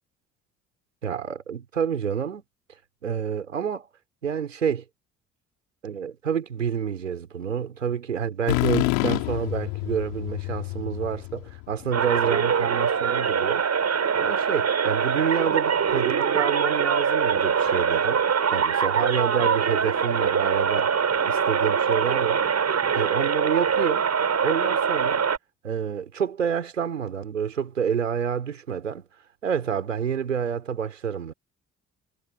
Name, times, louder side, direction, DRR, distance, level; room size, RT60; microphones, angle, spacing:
voice 1, 1.0-2.4 3.0-3.9 4.2-4.8 5.8-13.6 14.2-18.2 18.5-20.9 21.3-22.5 22.9-24.1 24.4-25.3 25.6-29.0 29.4-31.3, right 7 dB, 90° right, 4.7 m, -28 dB
sound 1, 8.5-12.2, left 31 dB, 75° left, 3.1 m, -27 dB
sound 2, 11.9-25.4, right 6 dB, 45° right, 7.7 m, -23 dB
figure-of-eight pair, 45°, 37 cm